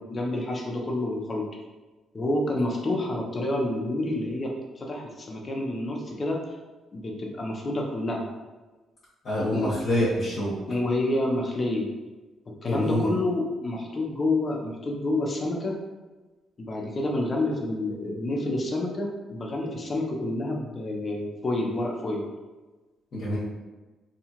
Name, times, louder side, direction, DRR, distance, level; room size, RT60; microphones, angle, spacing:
voice 1, 0.0-1.4 2.1-6.4 6.9-8.2 9.5-9.7 10.7-11.9 12.6-15.8 16.6-22.3, left 1 dB, 35° left, 0 dB, 0.6 m, -28 dB
voice 2, 9.2-10.5 12.6-13.1 23.1-23.4, left 1 dB, 55° left, -9 dB, 1.0 m, -26 dB
2.8 x 2.3 x 2.9 m, 1.2 s
cardioid pair, 90°, 0 cm